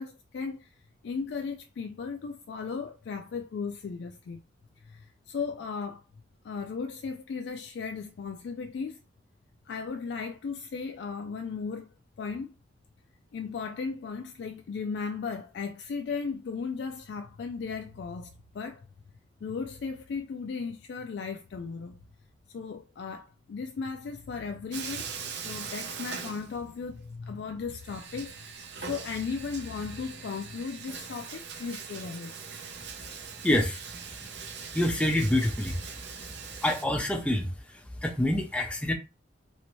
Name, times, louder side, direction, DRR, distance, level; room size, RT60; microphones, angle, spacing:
voice 1, 0.0-4.4 4.8-6.0 6.4-9.0 9.7-11.9 12.2-12.5 13.3-18.8 19.4-22.0 22.5-32.4, left 5 dB, 65° left, 0.3 m, -36 dB
Bathtub (filling or washing), 24.7-27.0 27.3-27.4 27.8-36.8, right 6 dB, 65° right, 0.7 m, -41 dB
voice 2, 33.4-33.8 34.2-34.3 34.7-35.8 36.1-36.2 36.6-38.9, left 1 dB, 5° left, 0.5 m, -27 dB
3.0 x 2.8 x 3.0 m
head